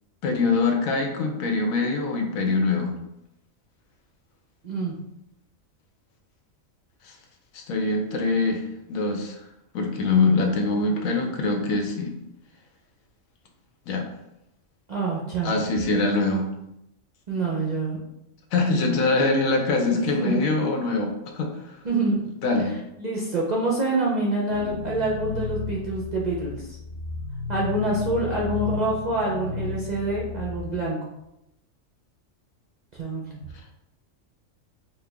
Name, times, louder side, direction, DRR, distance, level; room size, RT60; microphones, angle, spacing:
voice 1, 0.2-2.9 7.5-8.6 8.9-9.3 9.7-12.2 13.9-14.1 15.4-16.4 18.5-21.5 22.4-22.7, left 3 dB, 85° left, 2 dB, 1.1 m, -23 dB
voice 2, 4.6-5.0 14.9-15.5 17.3-18.0 18.7-19.0 19.9-20.4 21.8-22.2 23.0-26.7 27.5-31.0 32.9-33.4, right 2 dB, 50° right, -4 dB, 0.5 m, -26 dB
sound 1, 24.5-30.7, left 4 dB, 65° left, 0.8 m, -34 dB
4.4 x 2.1 x 3.3 m, 0.85 s
omnidirectional pair, 1.4 m